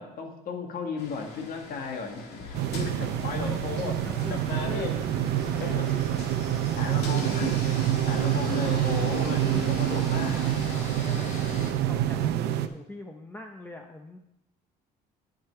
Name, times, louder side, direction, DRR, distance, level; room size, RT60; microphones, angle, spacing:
voice 1, 0.0-3.9 4.3-4.9 5.6-5.8 6.8-7.6 8.1-10.4, left 4 dB, 60° left, 3 dB, 1.9 m, -35 dB
sound 1, 1.0-11.7, left 3 dB, 75° left, 1.9 m, -42 dB
sound 2, 2.4-12.2, left 1 dB, 40° left, 3.5 m, -42 dB
sound 3, 2.5-12.7, right 12 dB, 80° right, 0.6 m, -27 dB
voice 2, 3.1-4.9 5.4-6.2 9.5-11.3 11.6-14.2, left 2 dB, 10° left, 3 dB, 0.7 m, -43 dB
10.0 x 6.4 x 4.7 m, 0.82 s
cardioid pair, 110°, 17 cm